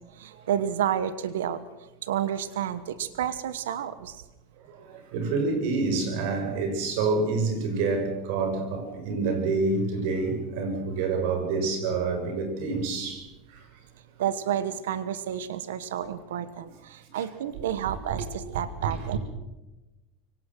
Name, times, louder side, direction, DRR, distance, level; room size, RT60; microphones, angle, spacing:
voice 1, 0.2-1.6 2.1-4.1 14.2-16.7 17.1-19.2, right 10 dB, 90° right, 14 dB, 1.2 m, -30 dB
voice 2, 4.7-13.7 16.4-16.5 17.1-18.3 18.8-19.2, right 3 dB, 70° right, 5 dB, 6.7 m, -28 dB
24.5 x 18.5 x 6.3 m, 1.0 s
supercardioid pair, 110°, 0 cm